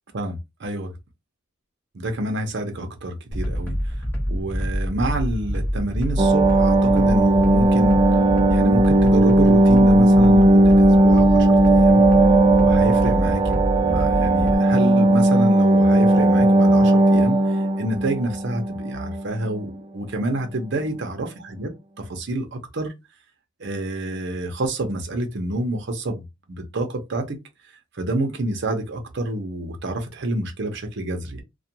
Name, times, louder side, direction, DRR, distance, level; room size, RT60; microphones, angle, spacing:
voice 1, 0.1-0.9 1.9-3.9 4.3-8.0 8.5-12.0 12.6-21.7 22.0-22.9 23.6-27.4 27.7-31.4, right 1 dB, 55° right, 0.7 m, -28 dB
sound 1, 3.3-14.6, equal, 10° left, 0.8 m, -26 dB
sound 2, 6.2-19.2 19.5-19.6, right 1 dB, 25° right, 0.3 m, -16 dB
2.4 x 2.2 x 2.7 m
head